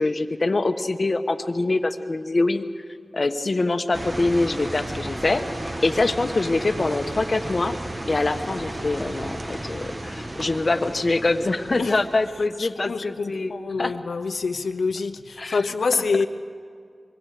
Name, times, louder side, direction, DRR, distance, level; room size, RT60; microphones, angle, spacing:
voice 1, 0.0-2.6 3.1-7.8 8.1-13.5 13.8-13.9 15.4-15.6, left 2 dB, 50° left, 8 dB, 1.2 m, -24 dB
sound 1, 3.9-12.5, right 1 dB, 30° right, 1.5 m, -34 dB
voice 2, 12.6-16.3, left 4 dB, 85° left, 9 dB, 0.9 m, -26 dB
24.5 x 23.5 x 5.0 m, 2.2 s
wide cardioid pair, 60°, 0 cm